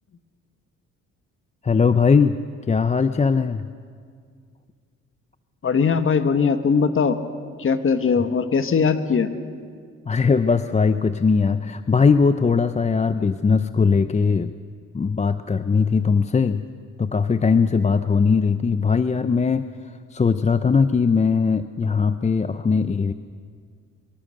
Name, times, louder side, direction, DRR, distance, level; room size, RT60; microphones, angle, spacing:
voice 1, 1.6-2.4 2.7-3.6 10.1-14.5 14.9-16.6 17.0-19.7 20.1-23.1, left 5 dB, 25° left, 11 dB, 0.6 m, -20 dB
voice 2, 5.6-7.2 7.6-9.3, left 5 dB, 45° left, 9 dB, 1.6 m, -20 dB
24.5 x 23.0 x 6.5 m, 2.1 s
cardioid pair, 90°, 30 cm